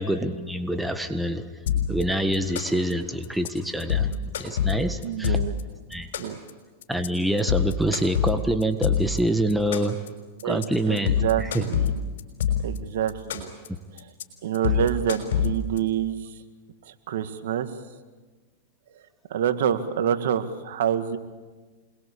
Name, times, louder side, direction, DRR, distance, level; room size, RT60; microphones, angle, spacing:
voice 1, 0.0-4.1 4.4-5.4 5.9-6.1 6.9-10.0 10.4-11.7 13.7-13.8, right 1 dB, 5° right, 8 dB, 1.6 m, -26 dB
sound 1, 1.7-2.0 2.3-2.9 3.2-3.5 3.8-5.6 5.9-6.5 6.8-7.1 7.4-9.2 9.5-10.1 10.4-10.6 11.0-12.8 13.1-13.7 14.0-14.2 14.5-15.8, left 8 dB, 75° left, 5.7 m, -25 dB
voice 2, 5.0-5.5 6.2-6.4 10.4-10.6 10.9-11.8 12.6-13.4 14.4-16.2 16.9-17.7 19.3-21.2, right 9 dB, 70° right, 9 dB, 2.0 m, -26 dB
27.5 x 22.0 x 8.6 m, 1.3 s
hypercardioid pair, 125°, 0 cm